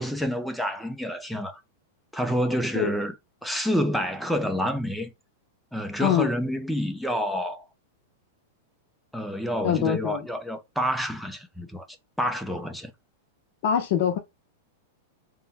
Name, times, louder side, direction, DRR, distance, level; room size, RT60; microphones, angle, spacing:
voice 1, 0.0-1.6 2.1-3.1 3.4-5.1 5.7-7.6 9.1-11.9 12.2-12.9, equal, ahead, 0.6 m, -28 dB
voice 2, 6.0-6.3 9.6-10.3 13.6-14.2, left 8 dB, 50° left, 0.7 m, -24 dB
3.7 x 2.2 x 4.1 m
supercardioid pair, 155°, 0 cm